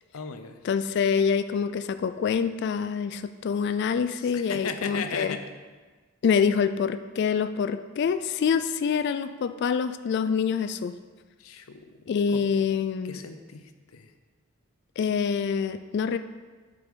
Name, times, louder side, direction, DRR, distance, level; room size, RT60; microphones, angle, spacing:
voice 1, 0.1-0.6 4.1-5.5 11.4-12.5 13.0-14.1, left 5 dB, 90° left, 8 dB, 0.7 m, -37 dB
voice 2, 0.6-5.4 6.2-11.0 12.1-13.2 15.0-16.2, left 6 dB, 55° left, 11 dB, 0.3 m, -26 dB
7.7 x 5.3 x 5.0 m, 1.4 s
head